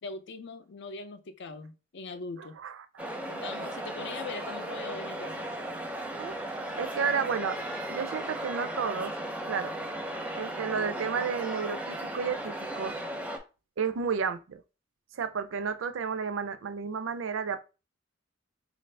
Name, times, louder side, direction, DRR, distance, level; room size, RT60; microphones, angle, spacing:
voice 1, 0.0-2.6 3.3-5.4, left 3 dB, 65° left, 0.5 m, -41 dB
voice 2, 2.6-3.1 6.1-6.3 6.8-7.6 7.9-9.1 9.5-9.7 10.3-13.0 13.8-14.6 15.1-17.6, right 6 dB, 70° right, 0.4 m, -32 dB
sound 1, 3.0-13.4, right 1 dB, 5° right, 0.5 m, -36 dB
3.7 x 2.5 x 3.3 m
head